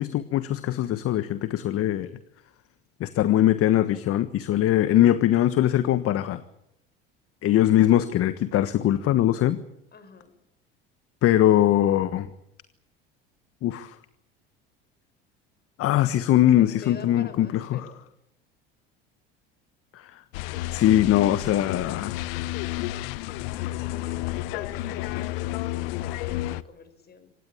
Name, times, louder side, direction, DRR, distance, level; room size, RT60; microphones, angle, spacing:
voice 1, 0.0-2.1 3.0-6.4 7.4-9.6 11.2-12.3 13.6-13.9 15.8-17.8 19.9-20.2 20.7-22.5, left 12 dB, 50° left, 13 dB, 1.4 m, -21 dB
voice 2, 9.9-10.3 16.4-18.0 23.8-27.3, left 5 dB, 35° left, 10 dB, 5.7 m, -45 dB
sound 1, 20.3-26.6, left 16 dB, 70° left, 1.0 m, -31 dB
25.5 x 19.0 x 8.6 m, 0.79 s
hypercardioid pair, 75°, 29 cm